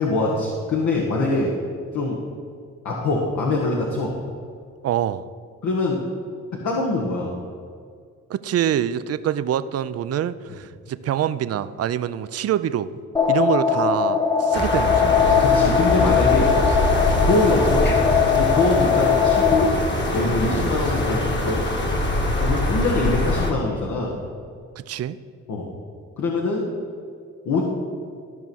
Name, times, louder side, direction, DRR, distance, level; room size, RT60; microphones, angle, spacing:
voice 1, 0.0-1.5 1.9-2.2 2.8-4.1 5.6-6.0 6.6-7.3 15.4-16.5 17.3-19.8 20.1-21.7 22.4-24.2 25.5-25.7 26.2-26.7 27.4-27.6, left 2 dB, 70° left, -2 dB, 1.6 m, -23 dB
voice 2, 4.8-5.3 8.3-13.0 13.3-15.2 20.4-20.7 24.8-25.2, right 10 dB, 55° right, 14 dB, 0.5 m, -25 dB
sound 1, 13.1-19.7, left 6 dB, 15° left, 0.6 m, -20 dB
sound 2, 14.5-23.5, left 1 dB, 35° left, 1.8 m, -23 dB
14.0 x 5.5 x 6.2 m, 2.2 s
cardioid pair, 90°, 30 cm